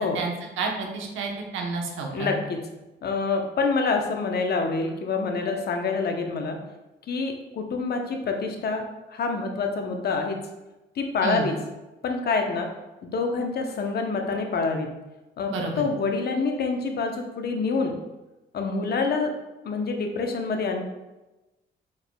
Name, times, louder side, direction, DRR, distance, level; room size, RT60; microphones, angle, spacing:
voice 1, 0.0-2.3 11.2-11.5 15.5-15.8, right 4 dB, 80° right, 1 dB, 0.9 m, -30 dB
voice 2, 2.1-2.7 3.0-6.6 7.1-10.4 11.0-11.6 12.0-12.7 13.0-14.9 15.4-15.5 15.8-18.0 18.5-19.3 19.6-20.8, left 4 dB, 55° left, 4 dB, 0.8 m, -26 dB
4.7 x 4.6 x 2.2 m, 1.0 s
cardioid pair, 90°, 20 cm